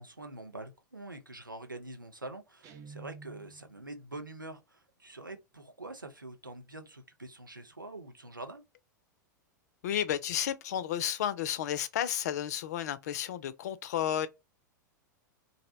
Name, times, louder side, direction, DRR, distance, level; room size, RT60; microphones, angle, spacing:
voice 1, 0.0-8.6, right 2 dB, 90° right, 0.5 m, -45 dB
Guitar, 2.6-3.8, right 4 dB, 35° right, 0.5 m, -49 dB
voice 2, 9.8-14.3, left 10 dB, 55° left, 0.3 m, -32 dB
2.6 x 2.0 x 2.5 m
figure-of-eight pair, 95°, 10 cm